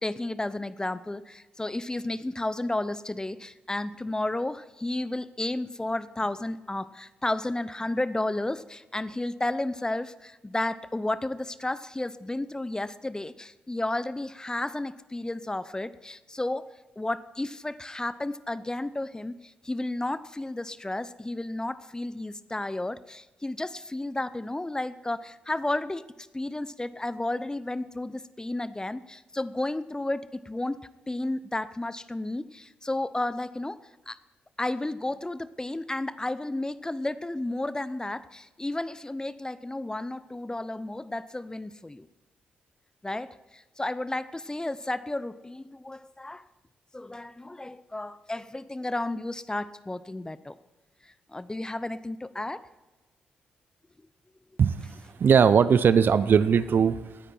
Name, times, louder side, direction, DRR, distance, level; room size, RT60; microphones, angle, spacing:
voice 1, 0.0-16.7 17.0-30.8 31.1-33.8 34.1-34.2 34.6-42.1 43.0-46.4 46.9-50.6 51.0-52.7, left 2 dB, 15° left, 16 dB, 0.7 m, -32 dB
voice 2, 54.6-57.2, right 7 dB, 55° right, 15 dB, 0.6 m, -20 dB
18.0 x 9.9 x 4.5 m, 1.1 s
hypercardioid pair, 40°, 4 cm